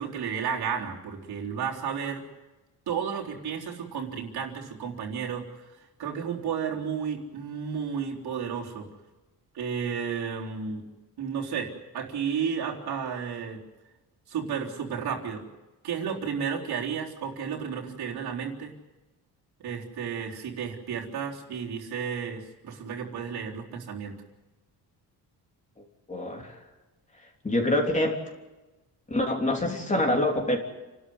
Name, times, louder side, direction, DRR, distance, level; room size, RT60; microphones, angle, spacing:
voice 1, 0.0-2.2 2.9-8.9 9.5-10.8 11.2-13.6 14.3-15.4 15.8-18.7 19.6-24.2, right 7 dB, 70° right, -2 dB, 3.9 m, -32 dB
voice 2, 25.8-26.6 27.4-28.2 29.1-30.6, left 1 dB, 20° left, 1 dB, 3.4 m, -26 dB
29.0 x 13.0 x 9.6 m, 1.1 s
cardioid pair, 140°, 39 cm